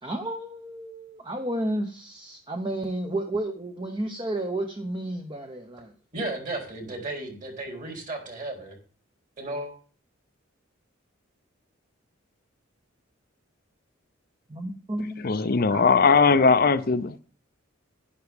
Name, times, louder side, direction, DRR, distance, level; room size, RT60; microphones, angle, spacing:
voice 1, 0.0-5.9 14.5-15.3 15.7-15.8, right 1 dB, 25° right, 0.9 m, -32 dB
voice 2, 6.1-8.8 9.4-9.7, right 2 dB, 40° right, 3.6 m, -34 dB
voice 3, 15.2-17.2, left 4 dB, 45° left, 0.6 m, -19 dB
11.0 x 10.5 x 3.5 m
head